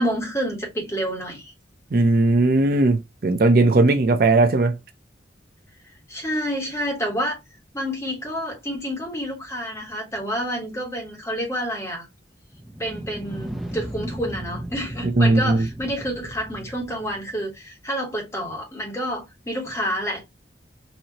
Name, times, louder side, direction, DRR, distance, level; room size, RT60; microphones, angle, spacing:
voice 1, 0.0-1.5 6.1-7.4 7.7-12.1 12.8-20.2, equal, 15° left, 1.6 m, -28 dB
voice 2, 1.9-4.7 15.2-15.6, right 2 dB, 50° right, 0.5 m, -18 dB
sound 1, 12.5-17.4, equal, ahead, 0.5 m, -36 dB
4.3 x 2.7 x 2.8 m
head